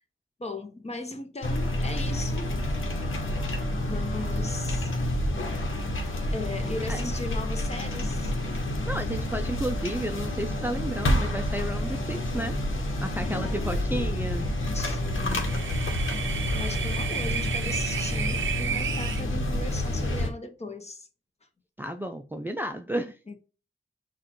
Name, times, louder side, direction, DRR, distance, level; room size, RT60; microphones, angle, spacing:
voice 1, 0.4-2.5 3.7-4.9 6.3-8.3 13.2-14.2 14.7-15.6 16.0-16.1 16.5-21.1 23.3-23.4, left 2 dB, 30° left, 0.9 m, -38 dB
sound 1, 1.4-20.3, left 1 dB, 85° left, 1.1 m, -29 dB
voice 2, 8.9-12.6 13.0-14.5 21.8-23.2, right 1 dB, 10° right, 0.4 m, -32 dB
sound 2, 14.9-19.2, right 8 dB, 75° right, 0.6 m, -33 dB
6.4 x 2.5 x 3.0 m
wide cardioid pair, 95°, 20 cm